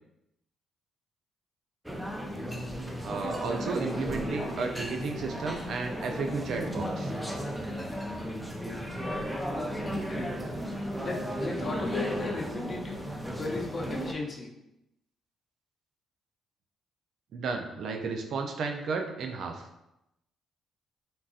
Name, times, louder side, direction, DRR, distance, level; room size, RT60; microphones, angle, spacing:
sound 1, 1.9-14.1, equal, 5° right, 0.4 m, -34 dB
voice 1, 3.0-7.1 17.3-19.6, right 4 dB, 70° right, 3 dB, 0.4 m, -33 dB
voice 2, 10.0-10.6 11.0-13.0 13.3-14.5, left 3 dB, 35° left, 0 dB, 0.6 m, -36 dB
3.7 x 2.6 x 2.4 m, 0.86 s
cardioid pair, 90°, 0 cm